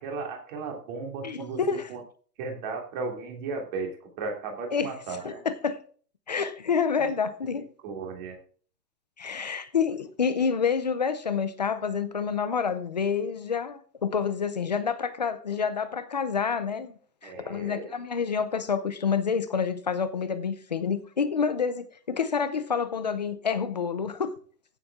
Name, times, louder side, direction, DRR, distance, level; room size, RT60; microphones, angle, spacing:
voice 1, 0.0-2.0 2.4-5.4 7.0-7.1 7.8-8.4 17.2-18.0, right 4 dB, 30° right, 2.9 m, -35 dB
voice 2, 1.2-1.8 4.7-4.9 5.2-5.8 6.3-7.7 9.2-16.9 17.2-24.3, left 6 dB, 25° left, 0.5 m, -28 dB
15.5 x 7.5 x 3.6 m
hypercardioid pair, 170°, 50 cm